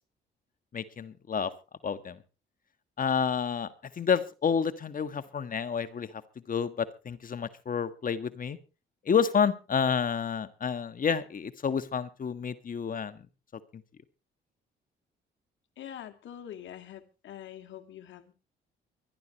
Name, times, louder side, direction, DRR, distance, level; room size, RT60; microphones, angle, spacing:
voice 1, 0.7-1.5 1.8-2.2 3.0-3.7 4.0-6.2 6.5-8.6 9.0-13.2 13.7-13.8, left 6 dB, 45° left, 12 dB, 1.5 m, -29 dB
voice 2, 15.8-18.3, left 10 dB, 70° left, 7 dB, 2.1 m, -44 dB
24.0 x 11.5 x 3.0 m, 0.31 s
cardioid pair, 90°, 20 cm